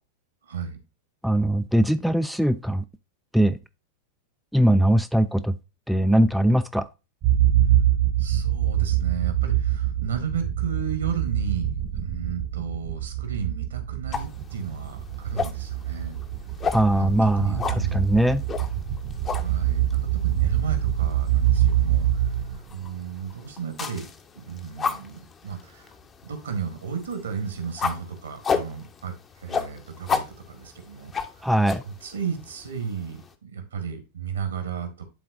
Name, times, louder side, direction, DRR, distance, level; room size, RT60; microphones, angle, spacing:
voice 1, 0.4-0.8 8.2-11.7 12.0-16.2 17.0-18.1 19.4-24.1 24.3-25.9 26.2-31.1 31.8-35.0, right 6 dB, 70° right, 1.5 m, -33 dB
voice 2, 1.2-2.8 3.3-3.6 4.5-5.5 5.9-6.9 16.7-18.4 31.4-31.8, right 1 dB, ahead, 0.3 m, -21 dB
sound 1, 7.2-22.9, right 11 dB, 40° right, 1.0 m, -25 dB
sound 2, 14.1-33.3, left 5 dB, 20° left, 0.8 m, -35 dB
11.0 x 3.8 x 2.4 m
figure-of-eight pair, 90°, 0 cm